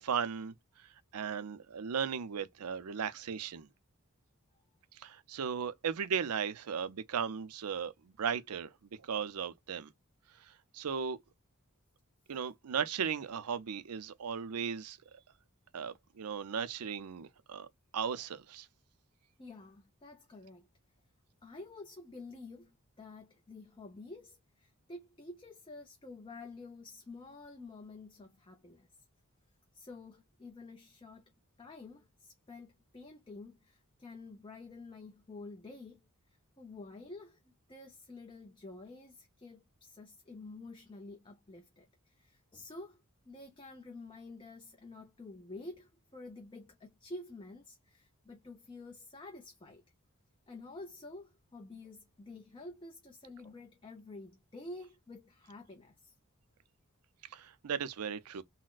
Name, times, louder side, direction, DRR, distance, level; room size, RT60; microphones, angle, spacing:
voice 1, 0.0-0.5 1.1-3.7 4.9-8.7 9.0-9.9 10.4-11.2 12.3-15.0 15.7-17.7 17.9-18.7 57.3-58.4, right 7 dB, 90° right, 0.5 m, -36 dB
voice 2, 19.4-20.7 21.4-28.9 29.7-31.2 31.6-36.0 36.3-49.8 50.5-56.1, left 2 dB, 25° left, 0.6 m, -49 dB
4.0 x 2.1 x 2.3 m
head